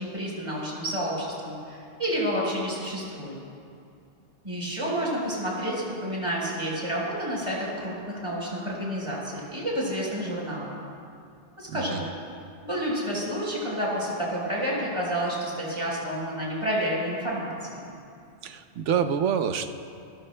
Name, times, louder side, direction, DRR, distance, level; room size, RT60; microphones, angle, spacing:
voice 1, 0.0-3.3 4.4-10.7 11.6-12.0 12.6-17.9, equal, 25° right, -5 dB, 4.4 m, -30 dB
voice 2, 11.7-12.0 18.4-19.7, right 7 dB, 90° right, 8 dB, 1.0 m, -27 dB
30.0 x 14.5 x 2.2 m, 2.4 s
omnidirectional pair, 1.2 m